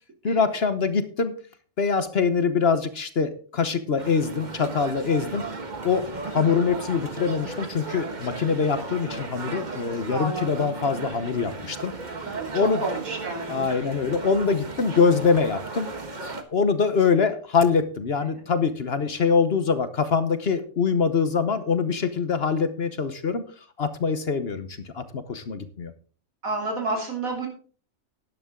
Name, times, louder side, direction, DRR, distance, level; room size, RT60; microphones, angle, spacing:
voice 1, 0.2-1.3 1.8-5.4 5.8-6.0 6.3-11.9 12.5-12.8 13.5-15.9 16.5-23.4 23.8-25.9, left 5 dB, 50° left, 11 dB, 1.2 m, -24 dB
sound 1, 4.0-16.4, right 3 dB, 35° right, 1.4 m, -35 dB
voice 2, 10.1-10.7 12.3-13.7 26.4-27.5, right 2 dB, 80° right, 2 dB, 3.6 m, -30 dB
12.5 x 10.5 x 3.8 m, 0.41 s
omnidirectional pair, 1.4 m